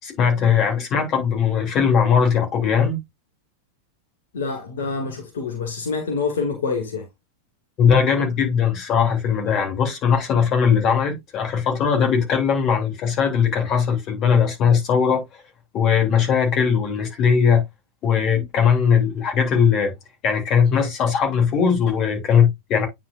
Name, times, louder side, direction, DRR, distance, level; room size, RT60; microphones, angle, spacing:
voice 1, 0.0-3.0 7.8-15.4 15.7-17.6 18.0-19.9 20.2-22.9, left 7 dB, 35° left, 3.0 m, -19 dB
voice 2, 4.3-7.1, left 4 dB, 60° left, 1.8 m, -26 dB
9.4 x 4.8 x 2.5 m
figure-of-eight pair, 90°, 0 cm